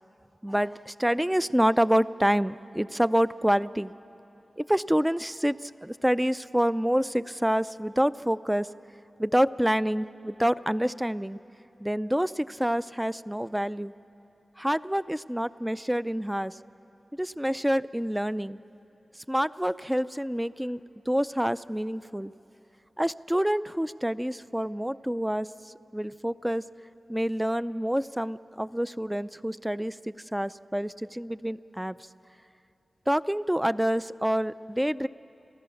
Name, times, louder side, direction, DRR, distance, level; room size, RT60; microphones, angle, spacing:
voice 1, 0.4-3.9 4.6-8.7 9.2-11.4 11.8-13.9 14.6-16.5 17.2-18.6 19.3-20.8 21.1-22.3 23.0-25.5 25.9-26.6 27.1-32.0 33.1-35.1, equal, 5° right, 16 dB, 0.4 m, -27 dB
29.0 x 14.5 x 7.1 m, 2.8 s
wide cardioid pair, 65°, 0 cm